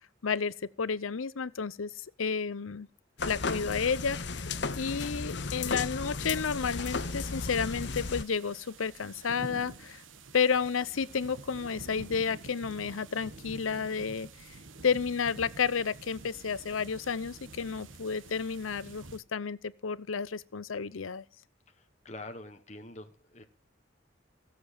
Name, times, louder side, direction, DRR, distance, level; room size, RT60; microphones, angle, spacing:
voice 1, 0.2-1.9 2.2-2.9 3.2-4.5 4.8-10.0 10.3-14.3 14.8-21.2, left 6 dB, 90° left, 0.7 m, -31 dB
sound 1, 3.2-8.2, left 4 dB, 60° left, 1.0 m, -34 dB
sound 2, 6.2-19.2, right 3 dB, 75° right, 1.3 m, -48 dB
voice 2, 21.7-23.4, left 2 dB, 35° left, 1.2 m, -46 dB
17.0 x 7.6 x 6.5 m
head